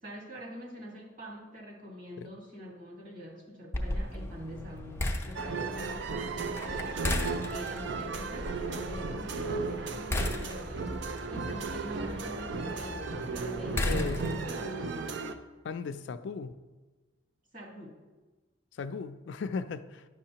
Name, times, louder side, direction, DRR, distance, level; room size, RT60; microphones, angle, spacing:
voice 1, 0.0-15.1 17.5-18.0, equal, 45° right, -1 dB, 1.6 m, -45 dB
sound 1, 3.7-14.6, left 1 dB, 15° left, 0.5 m, -36 dB
sound 2, 5.4-15.3, right 4 dB, 65° right, 0.5 m, -35 dB
voice 2, 13.8-14.3 15.6-16.5 18.7-20.1, left 5 dB, 65° left, 10 dB, 0.3 m, -36 dB
10.5 x 6.4 x 2.9 m, 1.2 s
head